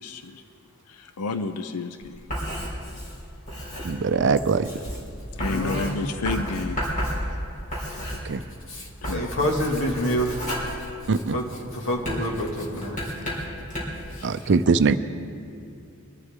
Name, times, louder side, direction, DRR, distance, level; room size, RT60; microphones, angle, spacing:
voice 1, 0.0-0.4 0.9-2.2 5.4-6.8 9.0-9.3 9.6-9.7 14.2-14.5, left 3 dB, 85° left, 9 dB, 0.6 m, -31 dB
Writing, 2.0-8.7 8.9-11.5 12.0-14.1, equal, 35° left, 3.7 m, -32 dB
voice 2, 3.8-4.7 8.2-8.4 11.1-11.4 14.2-15.0, right 4 dB, 55° right, 12 dB, 0.5 m, -21 dB
voice 3, 5.4-6.0 8.7-10.5 11.3-13.1, equal, 60° left, 0 dB, 2.2 m, -28 dB
23.5 x 11.5 x 3.7 m, 2.5 s
head